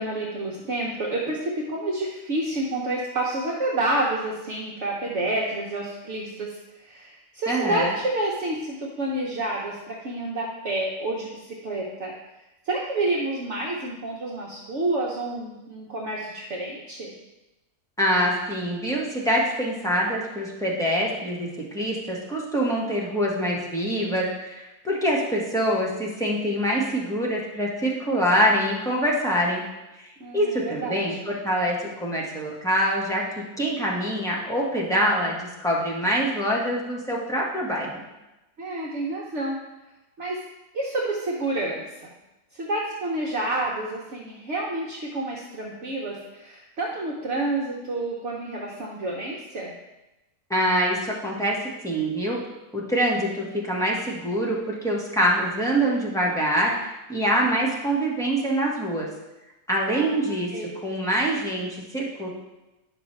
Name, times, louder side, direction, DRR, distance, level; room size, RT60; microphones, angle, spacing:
voice 1, 0.0-12.1 12.7-17.1 30.2-31.1 38.6-39.6 40.2-40.4 40.7-42.1 42.5-49.7 59.9-60.7, right 2 dB, 55° right, -3 dB, 1.2 m, -29 dB
voice 2, 7.5-7.9 18.0-21.5 21.7-29.6 30.3-38.0 50.5-52.4 52.7-59.1 59.7-62.3, equal, ahead, -4 dB, 1.3 m, -25 dB
10.0 x 5.9 x 3.3 m, 0.99 s
omnidirectional pair, 1.6 m